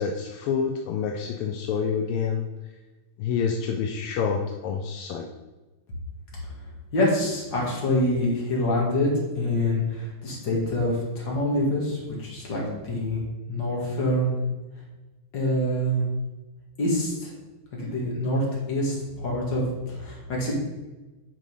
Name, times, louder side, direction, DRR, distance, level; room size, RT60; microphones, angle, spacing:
voice 1, 0.0-2.5 3.2-5.3, left 6 dB, 85° left, 3 dB, 1.5 m, -27 dB
voice 2, 6.9-13.2 13.5-14.4 15.3-16.1 16.8-17.3 17.8-20.5, left 1 dB, 60° left, -4 dB, 2.4 m, -26 dB
6.3 x 4.0 x 5.3 m, 1.2 s
omnidirectional pair, 2.4 m